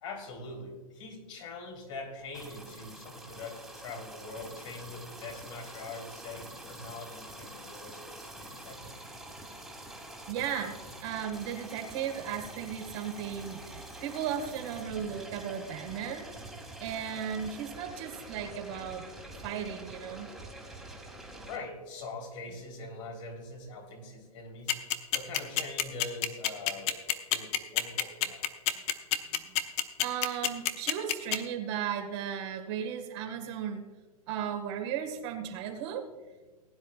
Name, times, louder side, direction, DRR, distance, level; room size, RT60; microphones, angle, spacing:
voice 1, 0.0-8.9 21.4-24.8 25.1-27.0 27.3-28.5, left 3 dB, 55° left, 0 dB, 3.8 m, -43 dB
sound 1, 2.3-21.6, right 1 dB, ahead, 2.3 m, -46 dB
voice 2, 10.3-16.3 16.8-20.3 28.3-28.4 28.7-28.8 29.3-29.6 30.0-33.8 34.3-36.1, right 8 dB, 50° right, 3 dB, 2.0 m, -36 dB
sound 2, 24.7-31.4, left 14 dB, 35° left, 0.9 m, -26 dB
19.5 x 10.0 x 2.5 m, 1.3 s
hypercardioid pair, 110°, 19 cm